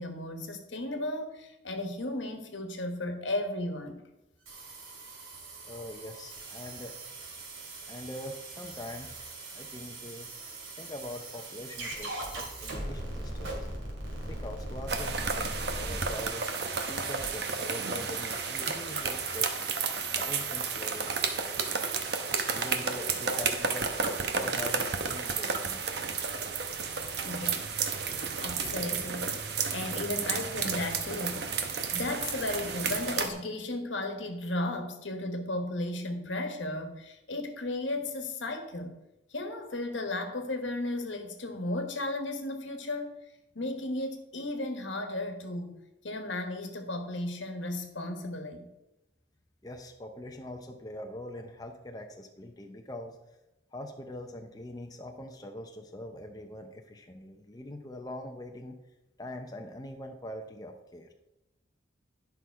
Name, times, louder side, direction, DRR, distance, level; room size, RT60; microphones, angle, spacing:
voice 1, 0.0-4.0 23.2-23.3 27.2-27.7 28.4-29.4 29.7-31.6 31.9-39.0 39.3-43.1 43.5-48.7, left 2 dB, 75° left, 5 dB, 1.3 m, -35 dB
sound 1, 4.5-22.0, right 2 dB, 90° right, 2.5 m, -41 dB
voice 2, 5.6-7.0 7.9-9.2 9.5-10.3 10.8-13.7 14.3-16.4 16.9-19.5 20.1-21.7 22.5-25.8 49.6-53.2 53.7-58.8 59.2-61.1, left 1 dB, 20° left, 3 dB, 0.6 m, -43 dB
sound 2, 14.9-33.3, right 5 dB, 55° right, 0.9 m, -32 dB
10.5 x 5.8 x 4.6 m, 0.93 s
head